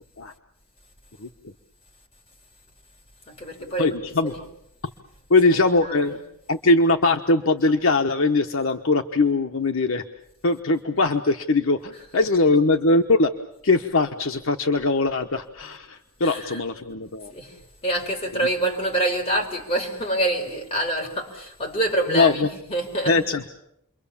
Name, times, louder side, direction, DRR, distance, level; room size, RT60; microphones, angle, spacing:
voice 1, 3.3-4.0 4.2-4.4 5.5-6.1 16.2-16.6 17.3-23.2, right 1 dB, 25° left, 5.0 m, -26 dB
voice 2, 3.8-4.3 5.3-6.2 6.5-10.0 10.4-13.3 13.6-17.3 22.1-22.5 23.1-23.5, left 3 dB, 65° left, 1.1 m, -21 dB
29.5 x 23.0 x 7.2 m
head